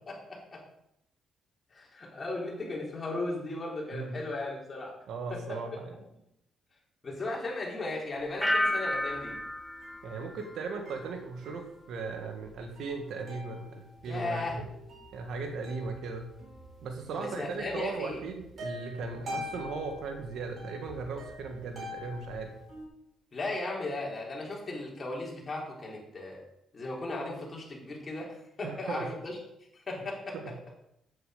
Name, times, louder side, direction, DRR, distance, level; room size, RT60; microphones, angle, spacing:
voice 1, 0.1-0.6 1.7-5.0 5.3-5.6 7.0-9.4 14.1-14.6 17.2-18.2 23.3-26.4 26.7-29.4 29.7-30.4, left 2 dB, 35° left, -2 dB, 4.0 m, -36 dB
voice 2, 5.1-6.0 10.0-14.7 15.1-16.3 16.8-22.6 28.6-29.1 30.3-30.5, right 4 dB, 75° right, 4 dB, 1.9 m, -37 dB
sound 1, 8.2-22.9, left 1 dB, 55° right, 4.8 m, -46 dB
sound 2, 8.4-11.2 11.6-12.1, left 1 dB, ahead, 0.7 m, -33 dB
9.0 x 8.7 x 5.2 m, 0.81 s
cardioid pair, 90°, 0 cm